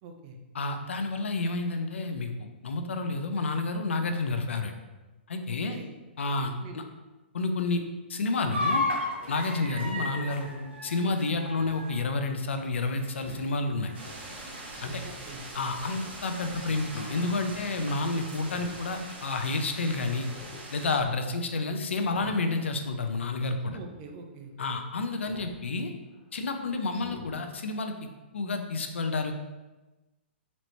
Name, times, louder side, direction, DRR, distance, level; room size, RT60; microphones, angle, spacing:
voice 1, 0.0-0.4 5.5-5.9 6.6-6.9 15.0-15.4 23.7-24.5, right 4 dB, 35° right, 3 dB, 0.6 m, -45 dB
voice 2, 0.5-4.7 5.3-5.8 6.2-6.8 7.3-7.8 8.1-8.9 9.3-10.5 10.8-13.9 14.8-15.0 15.5-20.3 20.7-23.8 24.6-25.9 26.3-27.9 28.3-29.3, left 3 dB, 85° left, 6 dB, 0.5 m, -30 dB
sound 1, 8.5-13.6 13.9-14.2 14.5-14.7 15.3-15.4 16.4-18.0, left 2 dB, 80° right, 1.2 m, -35 dB
Speech synthesizer, 11.6-11.8 13.2-13.5 14.7-15.2 16.6-17.0 18.3-18.9 19.2-19.3 20.2-20.7 21.1-21.4 22.0-22.4 23.6-23.9 25.3-25.6 26.1-26.2 26.9-27.4 27.8-27.9, left 4 dB, 30° left, 0.5 m, -46 dB
sound 2, 13.9-21.0, right 2 dB, 55° right, 1.3 m, -43 dB
4.1 x 2.9 x 3.2 m, 1.1 s
hypercardioid pair, 140°, 6 cm